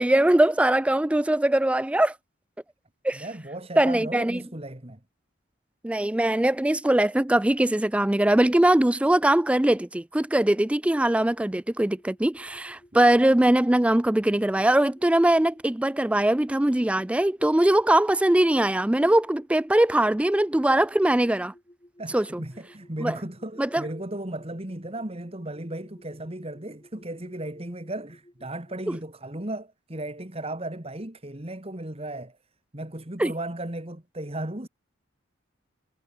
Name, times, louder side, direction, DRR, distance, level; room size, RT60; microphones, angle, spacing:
voice 1, 0.0-2.1 3.0-3.2 3.8-4.4 5.8-21.5 22.1-22.4 23.0-23.2 23.6-23.8 28.9-29.0 33.2-33.3, right 1 dB, 5° right, 0.3 m, -21 dB
voice 2, 3.1-5.0 22.0-32.4 32.7-34.7, right 1 dB, 30° right, 2.1 m, -35 dB
sound 1, 11.9-29.0, equal, 20° left, 3.4 m, -56 dB
head